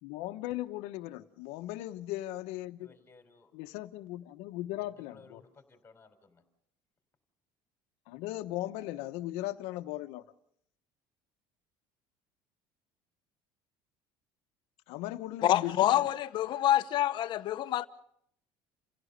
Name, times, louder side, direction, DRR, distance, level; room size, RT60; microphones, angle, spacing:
voice 1, 0.0-3.0 3.5-5.4 8.1-10.2 14.9-15.9, left 15 dB, 80° left, 1.1 m, -38 dB
voice 2, 2.8-3.5 4.9-6.4, left 4 dB, 20° left, 4.1 m, -58 dB
voice 3, 15.4-17.9, left 12 dB, 50° left, 1.0 m, -27 dB
29.0 x 16.0 x 6.7 m
cardioid pair, 145°, 10 cm